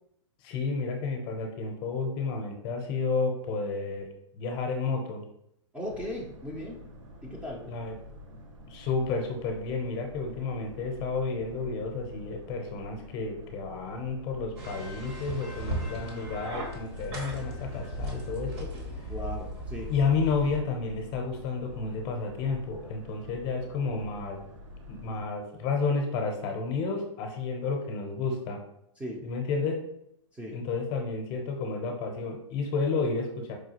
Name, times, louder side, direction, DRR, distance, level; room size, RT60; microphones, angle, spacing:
voice 1, 0.4-4.1 4.3-5.2 7.7-8.0 8.7-18.7 19.9-24.4 24.9-28.6 29.2-29.8 30.5-33.5, left 4 dB, 35° left, 3 dB, 0.6 m, -31 dB
voice 2, 5.7-6.8 7.2-7.6 19.1-19.9 29.0-29.2 30.3-30.6, left 1 dB, 10° right, -2 dB, 0.5 m, -37 dB
Boat Water vehicle, 5.8-25.3, left 1 dB, 75° right, 0.7 m, -47 dB
sound 1, 14.6-20.6, right 1 dB, 55° right, 1.0 m, -37 dB
4.6 x 2.3 x 2.9 m, 0.76 s
hypercardioid pair, 140°, 16 cm